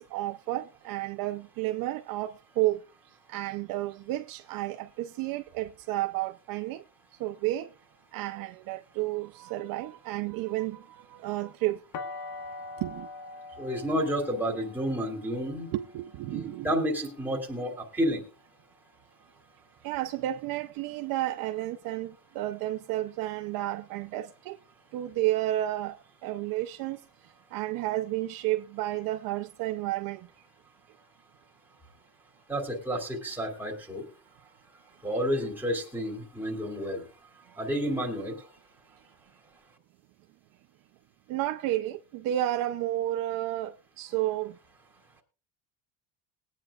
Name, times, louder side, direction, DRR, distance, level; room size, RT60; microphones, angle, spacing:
voice 1, 0.0-2.8 3.3-6.8 7.2-7.7 8.1-11.8 12.8-13.1 14.5-14.6 15.7-16.7 19.8-24.6 24.9-27.0 27.5-30.3 35.0-35.1 41.3-44.5, right 15 dB, 60° right, 0.8 m, -31 dB
sound 1, 11.9-17.8, left 3 dB, 60° left, 1.5 m, -44 dB
voice 2, 13.6-15.7 16.3-18.2 32.5-34.0 35.0-37.0 37.6-38.4, equal, 5° right, 2.7 m, -30 dB
21.0 x 9.2 x 2.4 m
cardioid pair, 155°, 40 cm